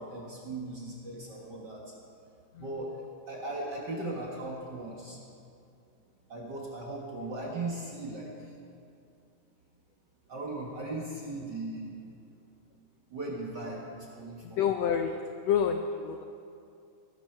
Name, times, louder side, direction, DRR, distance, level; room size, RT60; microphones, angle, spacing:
voice 1, 0.0-1.8 2.6-5.2 6.3-8.3 10.3-11.9 13.1-14.6, right 2 dB, 45° right, -2 dB, 1.4 m, -38 dB
voice 2, 14.4-16.2, left 7 dB, 90° left, 6 dB, 1.4 m, -29 dB
20.5 x 11.5 x 4.6 m, 2.5 s
omnidirectional pair, 3.8 m